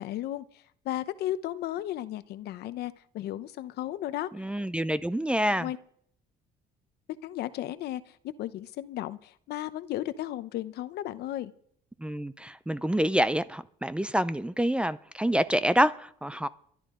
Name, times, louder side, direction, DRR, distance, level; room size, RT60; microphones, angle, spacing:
voice 1, 0.0-4.3 5.5-5.8 7.2-11.5, left 13 dB, 75° left, 13 dB, 0.8 m, -35 dB
voice 2, 4.4-5.7 12.0-16.5, equal, 5° right, 14 dB, 0.5 m, -27 dB
23.5 x 11.0 x 3.8 m, 0.65 s
cardioid pair, 110°, 17 cm